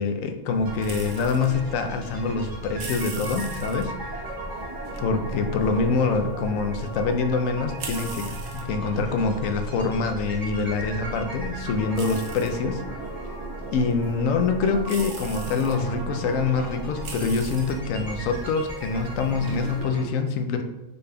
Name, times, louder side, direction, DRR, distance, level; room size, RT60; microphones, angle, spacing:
voice 1, 0.0-4.3 5.0-8.3 8.5-12.8 13.7-20.6, left 4 dB, 85° left, 6 dB, 1.0 m, -25 dB
sound 1, 0.5-19.8, right 2 dB, 55° right, 0.7 m, -38 dB
sound 2, 0.6-20.1, right 1 dB, 20° right, 0.9 m, -37 dB
Wind instrument woodwind instrument, 11.4-13.5 13.9-14.9 15.2-17.4, left 1 dB, 20° left, 1.5 m, -50 dB
5.0 x 4.1 x 2.2 m, 1.0 s
omnidirectional pair, 1.3 m